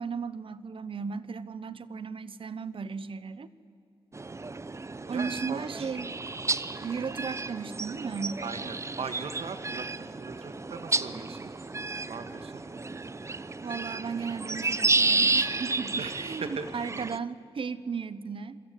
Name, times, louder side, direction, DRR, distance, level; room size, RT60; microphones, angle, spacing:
voice 1, 0.0-3.5 5.1-6.2 6.8-8.4 13.6-18.6, right 5 dB, 65° right, 15 dB, 1.0 m, -35 dB
sound 1, 4.1-17.2, right 3 dB, 30° right, 0.7 m, -31 dB
voice 2, 5.1-5.9 8.4-11.5 12.1-12.7 16.0-16.7, right 5 dB, 90° right, 9 dB, 1.8 m, -40 dB
27.0 x 22.5 x 8.5 m, 2.6 s
wide cardioid pair, 90°, 10 cm